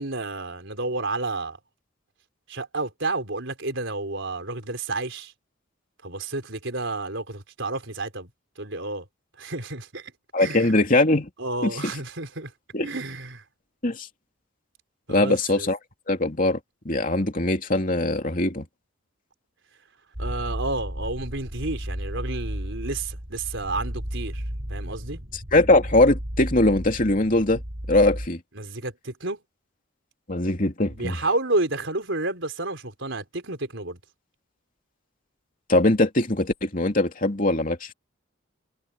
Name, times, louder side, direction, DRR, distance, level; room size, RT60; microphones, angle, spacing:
voice 1, 0.0-1.6 2.5-5.3 6.0-8.3 8.6-9.0 9.4-10.1 10.4-10.8 11.4-12.5 12.8-13.4 15.1-15.7 20.2-24.4 24.7-25.2 28.5-29.4 30.9-34.0, right 2 dB, 65° right, 4.6 m, -30 dB
voice 2, 10.3-11.3 11.6-11.7 12.7-12.9 13.8-14.1 15.1-15.8 16.1-16.6 16.8-18.7 25.5-27.6 27.9-28.4 30.3-31.2 35.7-37.9, left 2 dB, 40° left, 2.9 m, -21 dB
sound 1, 20.1-28.3, equal, 45° right, 3.9 m, -33 dB
head